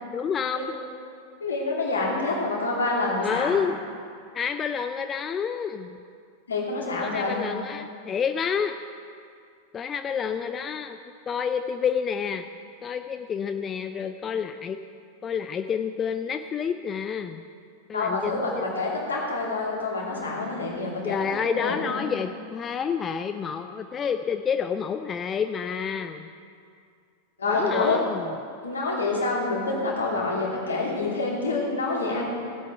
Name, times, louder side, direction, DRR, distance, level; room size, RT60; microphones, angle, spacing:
voice 1, 0.1-0.7 3.2-3.8 4.3-6.0 6.9-8.8 9.7-11.0 11.3-12.4 12.8-14.8 15.2-17.4 17.9-18.6 21.0-26.3 27.5-28.3, left 7 dB, 25° left, 8 dB, 0.4 m, -29 dB
voice 2, 1.4-3.5 6.5-7.4 17.9-22.0 27.4-28.0 28.6-32.2, left 3 dB, 75° left, -4 dB, 2.9 m, -27 dB
16.5 x 8.5 x 4.6 m, 2.3 s
figure-of-eight pair, 90°, 0 cm